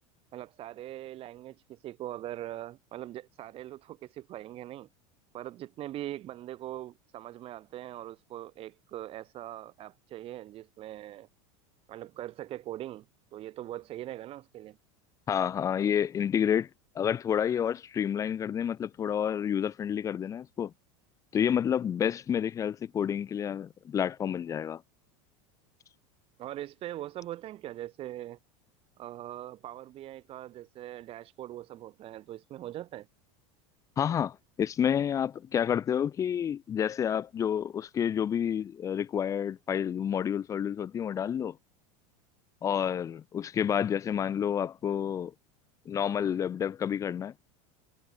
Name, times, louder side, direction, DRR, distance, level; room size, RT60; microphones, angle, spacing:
voice 1, 0.3-4.9 5.3-11.3 11.9-13.0 13.3-14.8 26.4-28.4 29.0-33.1, right 13 dB, 35° right, 1.0 m, -41 dB
voice 2, 15.3-16.7 17.0-20.7 21.3-24.8 34.0-41.6 42.6-45.3 45.9-47.3, left 8 dB, 20° left, 0.4 m, -29 dB
supercardioid pair, 130°, 16 cm